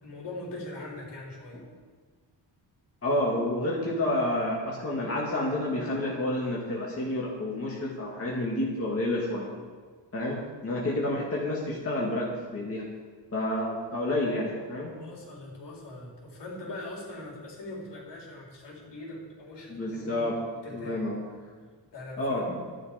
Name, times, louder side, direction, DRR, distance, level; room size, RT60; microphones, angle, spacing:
voice 1, 0.0-1.6 14.9-20.3 20.6-21.0 21.9-22.5, left 2 dB, 70° left, -3 dB, 4.1 m, -41 dB
voice 2, 3.0-9.5 10.1-12.8 13.3-14.9 19.7-20.4 20.7-21.2 22.2-22.6, left 1 dB, 30° left, -4 dB, 2.1 m, -29 dB
12.5 x 11.5 x 5.2 m, 1.5 s
wide cardioid pair, 160°, 44 cm